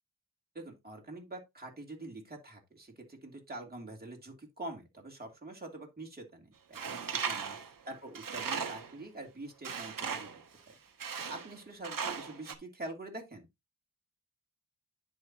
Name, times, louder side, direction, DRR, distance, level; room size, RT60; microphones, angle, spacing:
voice 1, 0.5-10.3 10.7-10.8 11.2-13.5, right 2 dB, 25° right, 2.9 m, -45 dB
Tools, 6.7-9.0 9.6-10.4 11.0-11.6 11.8-12.5, right 6 dB, 60° right, 1.1 m, -37 dB
10.0 x 4.7 x 2.9 m
cardioid pair, 55°, 38 cm